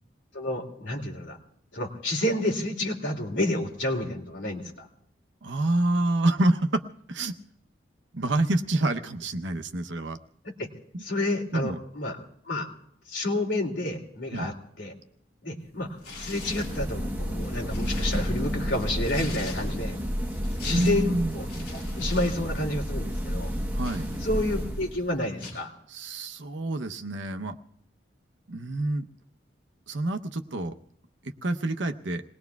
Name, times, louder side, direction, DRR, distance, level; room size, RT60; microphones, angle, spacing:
voice 1, 0.3-1.4 1.7-4.9 10.4-10.7 11.0-12.2 12.5-12.7 13.1-14.9 15.4-15.9 16.1-20.0 20.6-21.5 21.7-23.5 24.2-25.7, left 1 dB, 80° left, 0 dB, 2.7 m, -30 dB
voice 2, 5.4-6.8 7.1-7.4 8.1-10.2 10.9-11.0 11.5-11.8 14.3-14.5 20.7-21.3 23.7-24.2 25.9-27.5 28.5-29.1 29.9-30.7 31.2-32.2, right 1 dB, 80° right, 7 dB, 0.9 m, -27 dB
Tearing, 16.0-16.8 17.3-20.0 20.3-22.4 22.7-22.9 23.4-24.6 25.4-25.6, left 3 dB, 60° left, 7.4 m, -42 dB
sound 1, 16.1-25.2, equal, 10° right, 1.1 m, -31 dB
28.0 x 19.5 x 2.4 m, 0.71 s
head